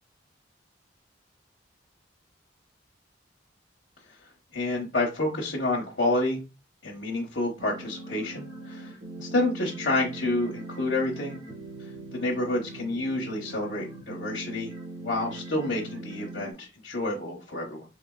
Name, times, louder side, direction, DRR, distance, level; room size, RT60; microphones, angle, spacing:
voice 1, 4.2-6.4 6.8-11.4 12.1-14.7 15.0-17.8, left 2 dB, 65° left, -3 dB, 1.1 m, -29 dB
sound 1, 7.6-16.5, right 2 dB, 65° right, 1.3 m, -41 dB
4.8 x 3.3 x 2.4 m, 0.29 s
head